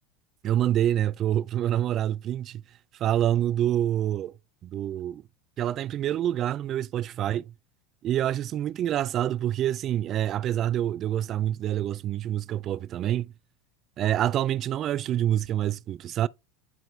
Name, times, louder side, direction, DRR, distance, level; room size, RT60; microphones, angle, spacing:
voice 1, 0.4-2.6 3.0-4.3 4.6-5.2 5.6-7.5 8.0-13.3 14.0-16.3, right 11 dB, 40° right, 0.3 m, -26 dB
9.0 x 4.0 x 3.3 m
supercardioid pair, 125°, 0 cm